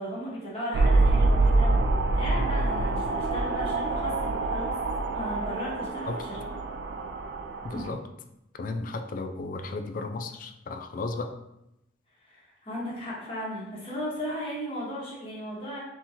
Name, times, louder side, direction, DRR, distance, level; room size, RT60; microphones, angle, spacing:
voice 1, 0.0-4.7 5.1-6.4 7.7-7.9 12.2-15.8, equal, 30° left, -5 dB, 1.3 m, -36 dB
sound 1, 0.7-7.9, right 2 dB, 65° right, 0.4 m, -25 dB
voice 2, 7.6-8.0 8.5-11.3, left 3 dB, 45° left, 6 dB, 0.4 m, -34 dB
4.3 x 3.6 x 2.9 m, 0.87 s
head